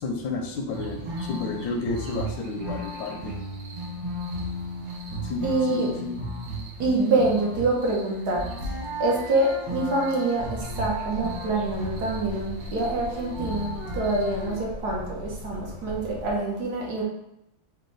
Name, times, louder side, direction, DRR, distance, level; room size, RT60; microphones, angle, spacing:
voice 1, 0.0-3.3 5.2-6.2, left 3 dB, 80° left, 3 dB, 1.4 m, -31 dB
sound 1, 0.7-14.6, right 1 dB, 90° right, 1.8 m, -35 dB
voice 2, 5.4-5.9 6.8-8.7 9.0-17.0, right 2 dB, 65° right, -2 dB, 1.4 m, -26 dB
sound 2, 10.3-16.4, left 3 dB, 60° left, 0.9 m, -39 dB
4.7 x 2.2 x 4.0 m, 0.86 s
omnidirectional pair, 2.0 m